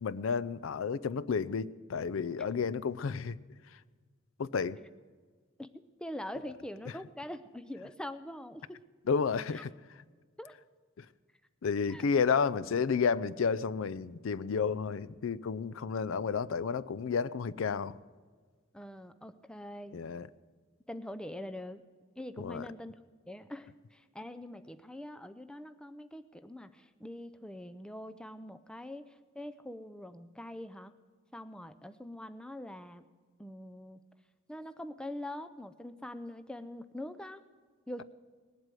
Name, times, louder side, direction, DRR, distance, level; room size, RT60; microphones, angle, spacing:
voice 1, 0.0-3.4 4.4-4.8 9.1-9.7 11.0-11.1 11.6-18.0 19.9-20.3 22.4-22.7, left 5 dB, 75° left, 0.4 m, -31 dB
voice 2, 5.6-8.9 9.5-9.6 10.4-10.5 11.9-12.0 18.7-20.0 20.9-21.8 22.2-22.9 23.3-30.9 31.3-33.1 33.4-34.0 34.5-37.4 37.9-38.0, left 1 dB, 5° left, 0.5 m, -44 dB
19.0 x 8.0 x 9.1 m
head